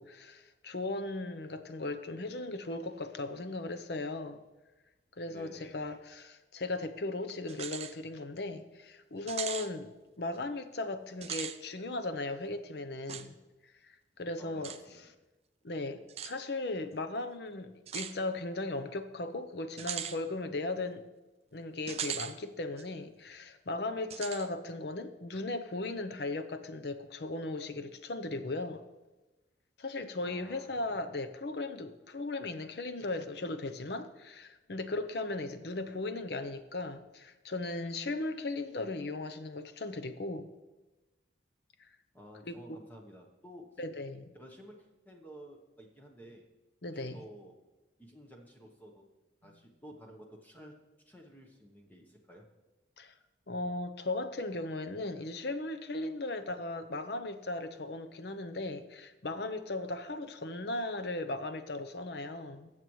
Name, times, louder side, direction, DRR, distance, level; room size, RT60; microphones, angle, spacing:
voice 1, 0.0-4.4 5.2-13.3 13.9-14.7 15.6-21.0 21.5-28.8 29.8-40.5 42.5-42.8 43.8-44.3 46.8-47.2 49.4-49.6 53.0-53.1 53.5-62.7, left 2 dB, 60° left, 0.7 m, -37 dB
voice 2, 5.3-5.9 14.4-15.1 30.2-31.0 42.1-43.8 44.3-46.5 46.9-47.5 48.0-49.0 49.4-50.8 51.1-52.5, equal, 10° left, 0.9 m, -52 dB
sound 1, 7.5-7.9 8.4-8.5 9.3-9.7 11.1-11.6 13.1-13.3 14.6-14.8 16.1-16.3 17.9-18.2 19.8-20.2 21.9-22.3 22.8-22.9 24.1-24.5, right 9 dB, 35° right, 0.4 m, -38 dB
19.0 x 7.6 x 3.1 m
head